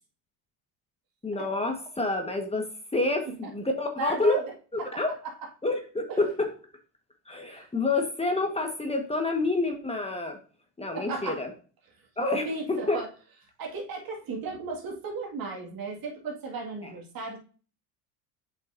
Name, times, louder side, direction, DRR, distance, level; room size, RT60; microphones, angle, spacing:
voice 1, 1.2-4.4 4.9-5.1 5.6-6.5 7.3-10.4 10.8-11.5 12.2-13.0 16.8-16.9, left 2 dB, 15° left, 3 dB, 1.4 m, -28 dB
voice 2, 4.0-4.5 4.8-5.0 6.1-6.2 7.5-7.7 10.9-11.4 12.4-13.1 13.6-17.4, right 3 dB, 50° right, 0 dB, 2.2 m, -35 dB
7.9 x 5.3 x 2.7 m, 0.39 s
hypercardioid pair, 85°, 46 cm